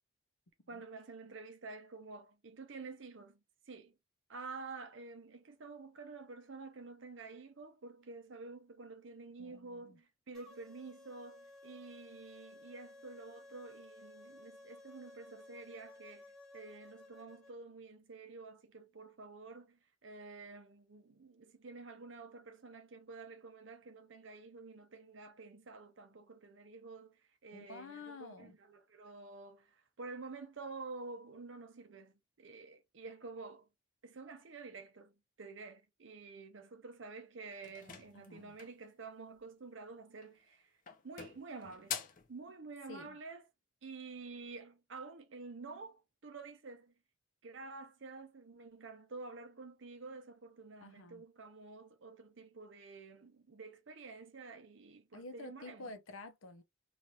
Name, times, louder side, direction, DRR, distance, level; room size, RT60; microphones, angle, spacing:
voice 1, 0.7-3.4 3.7-4.0 4.3-16.3 16.5-33.7 34.0-40.7 41.0-42.0 42.3-43.4 43.8-46.9 47.4-55.9, right 3 dB, 60° right, 0.6 m, -50 dB
voice 2, 9.4-10.0 27.5-28.6 38.1-38.5 42.9-43.2 50.8-51.2 55.1-56.6, left 3 dB, 80° left, 0.7 m, -50 dB
sound 1, 10.3-17.5, left 2 dB, 5° left, 1.0 m, -56 dB
sound 2, 37.6-38.9 40.1-40.5 40.9-42.3, left 7 dB, 40° left, 0.6 m, -45 dB
3.2 x 2.5 x 2.7 m
head